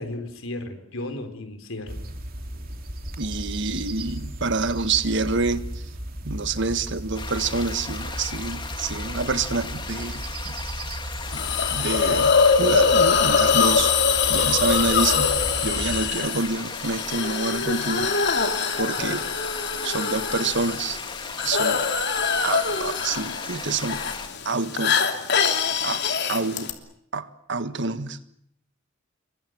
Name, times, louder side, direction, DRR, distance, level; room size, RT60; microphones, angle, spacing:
voice 1, 0.0-2.1 21.7-21.8, left 1 dB, 80° left, 7 dB, 4.5 m, -34 dB
sound 1, 1.9-16.1, right 1 dB, 45° right, 3.1 m, -35 dB
voice 2, 3.2-5.8 6.2-10.6 10.8-10.9 11.3-11.4 11.7-13.9 14.3-18.1 18.8-19.2 19.8-21.0 21.4-21.8 22.4-24.0 24.4-25.0 25.4-25.5 25.8-26.0 26.3-26.7 27.1-28.2, right 3 dB, 60° right, 12 dB, 1.6 m, -27 dB
sound 2, 7.1-24.3, left 4 dB, 25° left, 2.4 m, -36 dB
Hiss, 11.3-26.7, left 6 dB, 55° left, 3.0 m, -23 dB
29.0 x 23.5 x 7.8 m, 0.70 s
head